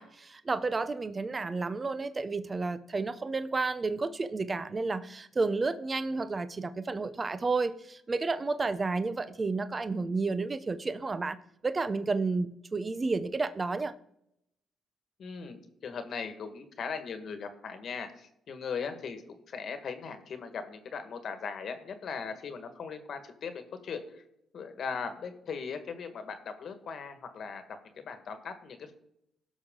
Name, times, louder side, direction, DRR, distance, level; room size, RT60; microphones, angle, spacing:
voice 1, 0.0-14.0, right 3 dB, 30° right, 12 dB, 0.6 m, -31 dB
voice 2, 15.2-24.2 24.5-28.9, left 5 dB, 60° left, 8 dB, 1.5 m, -39 dB
17.0 x 6.1 x 3.7 m, 0.77 s
cardioid pair, 90°, 0 cm